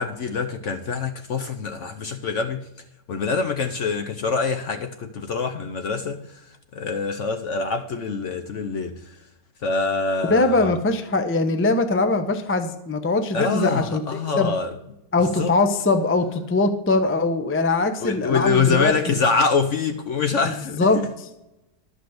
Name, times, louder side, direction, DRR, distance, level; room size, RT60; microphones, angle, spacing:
voice 1, 0.0-2.6 3.1-6.2 6.7-8.9 9.6-10.7 13.3-14.7 15.4-15.5 18.0-21.1, left 4 dB, 60° left, 0.9 m, -25 dB
voice 2, 10.3-14.0 14.4-14.5 15.1-19.1 20.4-21.3, left 3 dB, 15° left, 0.4 m, -22 dB
11.5 x 5.1 x 7.9 m
omnidirectional pair, 1.8 m